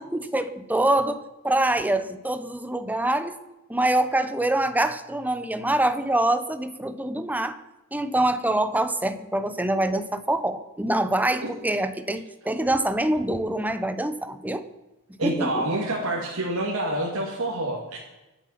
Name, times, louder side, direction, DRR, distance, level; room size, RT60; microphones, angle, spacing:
voice 1, 0.0-3.4 3.7-7.6 7.9-14.6 15.2-15.6, right 1 dB, 10° right, 10 dB, 0.9 m, -25 dB
voice 2, 15.2-18.0, right 1 dB, 85° right, -3 dB, 2.6 m, -27 dB
24.0 x 8.3 x 5.8 m, 1.0 s
head